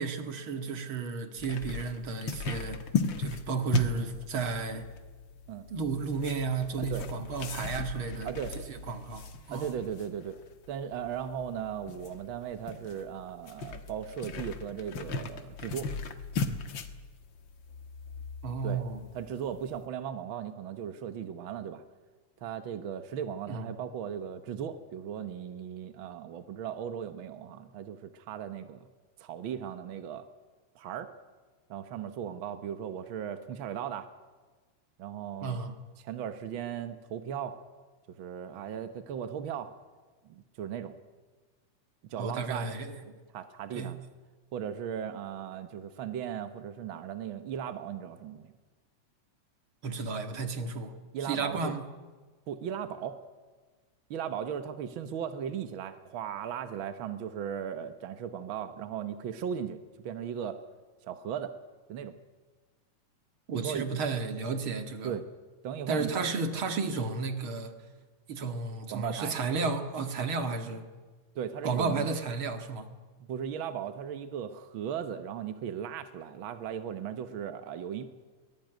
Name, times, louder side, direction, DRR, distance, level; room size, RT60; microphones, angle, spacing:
voice 1, 0.0-2.8 3.2-4.9 5.7-8.3 8.7-9.8 18.4-19.0 23.5-23.7 35.4-35.8 42.2-43.2 43.7-44.0 49.8-50.9 51.2-51.9 63.5-65.1 65.9-67.7 68.3-70.9 71.6-72.9, right 4 dB, 45° right, 7 dB, 2.4 m, -33 dB
sound 1, 1.4-19.8, left 3 dB, 50° left, 1.6 m, -37 dB
voice 2, 8.2-8.5 9.5-10.4 10.7-15.9 18.6-18.8 19.1-21.8 22.4-28.9 29.2-30.3 30.7-31.1 31.7-34.1 35.0-35.6 36.0-37.6 38.2-39.7 40.2-41.0 42.0-42.7 43.3-44.0 44.5-48.5 51.1-51.7 52.5-53.2 54.1-60.6 61.0-61.5 61.9-62.2 63.5-63.9 65.0-65.2 65.6-66.3 68.9-69.3 71.3-72.1 73.3-78.0, right 8 dB, 65° right, 10 dB, 1.2 m, -37 dB
22.5 x 20.0 x 9.2 m, 1.4 s
omnidirectional pair, 3.6 m